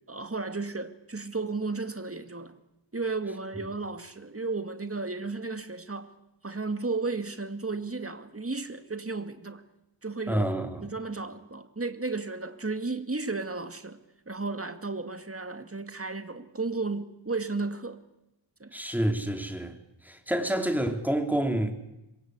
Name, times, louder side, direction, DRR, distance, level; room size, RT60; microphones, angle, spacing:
voice 1, 0.1-2.5 2.9-6.1 6.4-9.6 10.0-10.5 10.8-14.0 14.3-18.0 18.6-18.7, right 3 dB, 30° right, 2.3 m, -33 dB
voice 2, 10.3-10.9 18.7-19.7 20.0-21.7, right 1 dB, 5° right, 3.9 m, -28 dB
27.5 x 22.0 x 8.2 m
wide cardioid pair, 50°, 46 cm